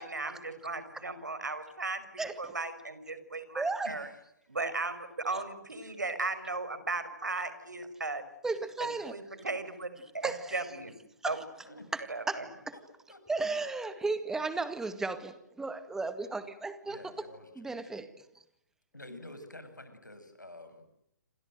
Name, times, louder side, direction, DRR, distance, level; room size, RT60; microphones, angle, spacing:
voice 1, 0.0-4.1 4.5-8.2 8.8-10.9 11.2-11.4 12.1-12.5, right 3 dB, 75° right, 12 dB, 5.6 m, -36 dB
voice 2, 2.2-2.5 3.5-3.9 5.3-5.4 8.4-9.2 10.2-10.6 11.2-11.3 11.9-12.8 13.3-17.3 17.6-18.3, right 3 dB, 5° right, 12 dB, 2.0 m, -35 dB
voice 3, 16.8-17.7 18.9-20.8, left 1 dB, 85° left, 9 dB, 7.0 m, -48 dB
28.5 x 26.0 x 7.9 m, 0.79 s
figure-of-eight pair, 130°, 10 cm